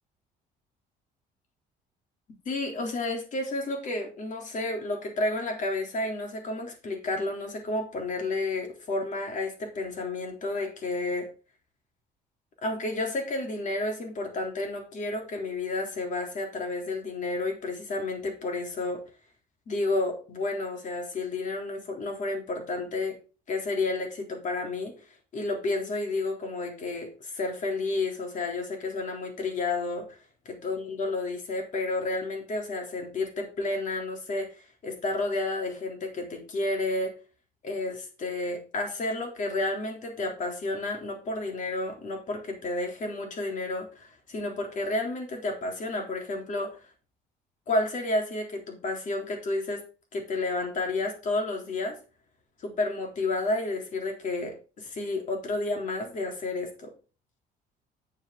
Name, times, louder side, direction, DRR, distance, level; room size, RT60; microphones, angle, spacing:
voice 1, 2.5-11.3 12.6-19.0 19.7-23.2 23.5-25.0 25.3-30.2 30.5-37.1 37.6-46.9 47.7-49.8 50.1-52.0 52.6-56.9, left 2 dB, 50° left, 2 dB, 3.5 m, -31 dB
9.0 x 7.2 x 4.0 m, 0.35 s
cardioid pair, 110°, 17 cm